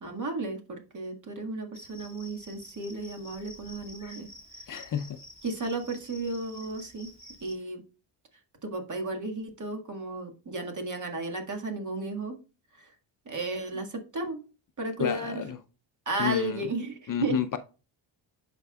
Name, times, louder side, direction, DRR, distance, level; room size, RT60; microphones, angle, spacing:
voice 1, 0.0-4.3 5.4-7.1 7.4-7.8 8.6-12.4 12.7-12.9 13.3-14.4 14.8-15.4 16.1-17.4, right 2 dB, 40° right, 1.8 m, -34 dB
Cricket, 1.7-7.5, left 1 dB, 10° right, 1.9 m, -49 dB
voice 2, 4.7-5.2 13.7-13.8 15.0-15.6 16.2-16.7 17.1-17.6, left 9 dB, 45° left, 0.6 m, -30 dB
11.0 x 4.5 x 2.3 m
cardioid pair, 90°, 47 cm